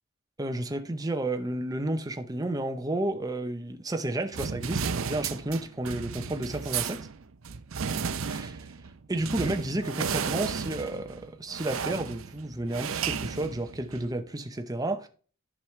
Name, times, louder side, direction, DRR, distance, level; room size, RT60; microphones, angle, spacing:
voice 1, 0.4-7.1 8.3-8.7 9.1-15.1, right 1 dB, 20° right, 0.7 m, -31 dB
sound 1, 4.3-14.1, right 6 dB, 75° right, 0.6 m, -34 dB
10.5 x 6.2 x 3.2 m
head